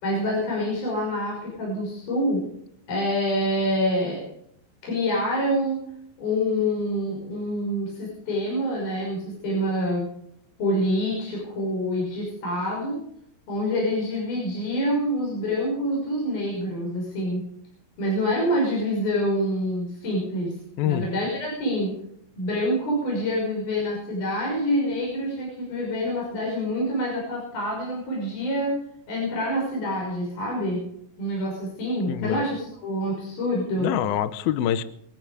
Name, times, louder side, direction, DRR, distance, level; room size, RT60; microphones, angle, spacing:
voice 1, 0.0-2.4 2.9-4.2 4.8-5.8 6.2-10.1 10.6-13.0 13.5-17.4 18.0-20.5 20.8-21.9 22.4-28.7 29.1-30.8 31.2-33.9, equal, 55° left, -3 dB, 7.9 m, -26 dB
voice 2, 20.8-21.1 32.1-32.4 33.8-34.8, left 11 dB, 75° left, 13 dB, 2.4 m, -25 dB
25.0 x 10.5 x 5.1 m, 0.71 s
omnidirectional pair, 5.0 m